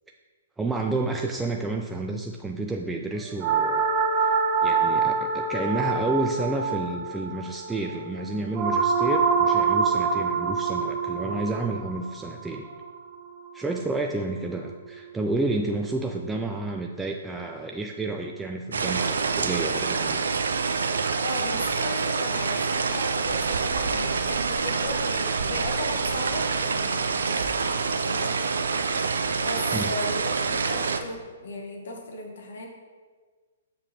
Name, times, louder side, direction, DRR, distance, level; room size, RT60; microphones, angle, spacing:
voice 1, 0.6-3.8 4.2-4.3 4.6-12.7 13.5-20.3 29.7-29.9, right 2 dB, 10° right, 2 dB, 0.3 m, -30 dB
sound 1, 3.4-13.6, right 5 dB, 35° right, 0.7 m, -25 dB
sound 2, 18.7-31.0, right 5 dB, 75° right, 0.4 m, -26 dB
voice 2, 21.2-28.6 29.4-32.7, left 2 dB, 65° left, 2 dB, 1.2 m, -36 dB
6.9 x 5.2 x 2.8 m, 1.5 s
hypercardioid pair, 125°, 0 cm